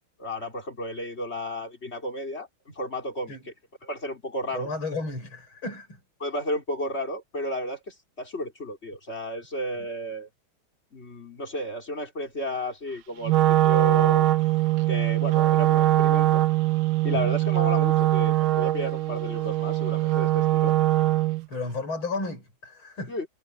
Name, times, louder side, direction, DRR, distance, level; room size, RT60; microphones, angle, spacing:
voice 1, 0.2-3.4 3.8-4.7 6.2-10.3 10.9-14.3 14.9-16.4 17.0-20.8 23.1-23.3, equal, 30° left, 4.2 m, -32 dB
voice 2, 4.5-6.0 9.8-9.9 17.1-17.3 21.5-23.1, left 3 dB, 70° left, 6.9 m, -33 dB
Wind instrument woodwind instrument, 13.2-21.4, right 16 dB, 75° right, 1.6 m, -22 dB
omnidirectional pair, 2.3 m